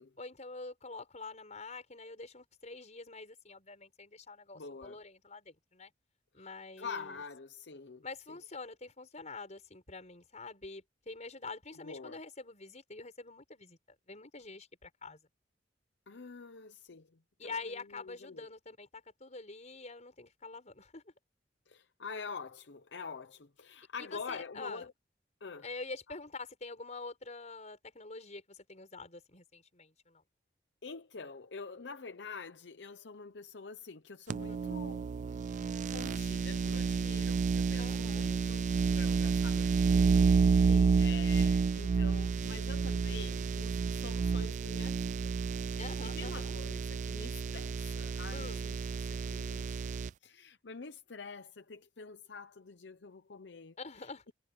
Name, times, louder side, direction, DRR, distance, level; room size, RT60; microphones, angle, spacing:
voice 1, 0.2-5.9 6.3-7.2 8.0-13.8 14.1-15.2 17.4-21.0 24.0-24.8 25.6-30.2 34.5-34.7 37.8-38.3 40.7-41.0 45.8-46.5 48.3-48.6 53.8-54.2, left 3 dB, 40° left, 5.8 m, -46 dB
voice 2, 4.5-5.0 6.4-6.5 6.8-8.0 11.8-12.2 16.1-18.5 21.7-24.9 25.4-25.7 26.1-26.2 30.8-35.1 35.9-38.7 38.9-45.4 45.7-48.8 49.0-54.1, left 5 dB, 70° left, 0.8 m, -47 dB
sound 1, 34.3-50.1, right 5 dB, 45° right, 0.3 m, -30 dB
head